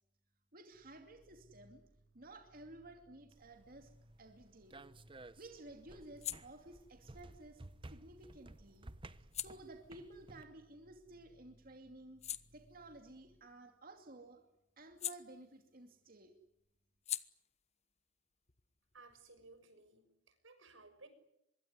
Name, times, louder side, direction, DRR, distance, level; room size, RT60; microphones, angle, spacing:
voice 1, 0.5-1.8 2.1-3.9 4.2-4.8 5.4-8.9 9.2-12.2 12.5-14.4 14.8-16.3, right 2 dB, 45° right, 4 dB, 2.7 m, -55 dB
sound 1, 0.7-13.4, equal, 65° right, 6.7 m, -67 dB
sound 2, 3.3-10.4, right 2 dB, 25° right, 0.9 m, -56 dB
sound 3, 4.4-11.3 11.7-16.0 16.2-19.6, left 11 dB, 35° left, 1.1 m, -50 dB
voice 2, 18.9-21.1, right 3 dB, 80° right, 10 dB, 6.4 m, -59 dB
25.0 x 22.5 x 9.7 m, 0.79 s
head